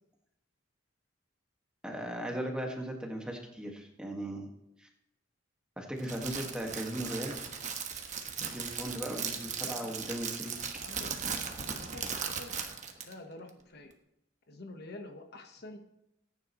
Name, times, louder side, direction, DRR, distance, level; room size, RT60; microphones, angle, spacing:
voice 1, 1.8-4.5 4.8-4.9 5.8-7.4 8.4-10.6, right 1 dB, 5° right, 1 dB, 1.8 m, -38 dB
Crackle, 6.0-13.1, right 6 dB, 40° right, 1.3 m, -37 dB
voice 2, 9.6-10.0 10.5-12.5 13.1-13.9 14.5-15.8, left 2 dB, 55° left, 4 dB, 1.3 m, -48 dB
19.5 x 10.0 x 3.1 m, 0.81 s
head